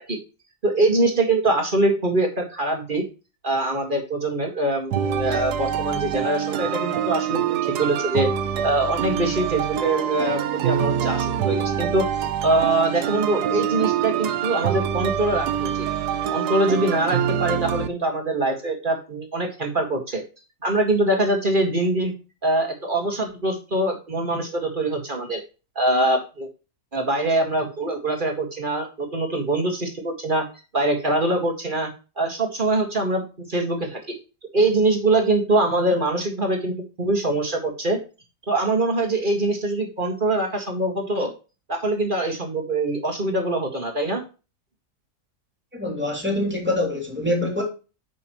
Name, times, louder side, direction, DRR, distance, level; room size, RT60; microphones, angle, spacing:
voice 1, 0.6-3.0 3.4-8.3 8.6-15.9 16.3-20.2 20.6-22.1 22.4-25.4 25.8-26.5 26.9-30.5 30.7-33.2 33.5-34.1 34.5-38.0 38.5-41.3 41.7-44.2, right 2 dB, 30° right, 2.1 m, -23 dB
sound 1, 4.9-17.9, right 9 dB, 90° right, 1.3 m, -25 dB
voice 2, 45.7-47.6, left 1 dB, 5° right, 2.9 m, -25 dB
9.6 x 6.2 x 3.1 m
omnidirectional pair, 1.7 m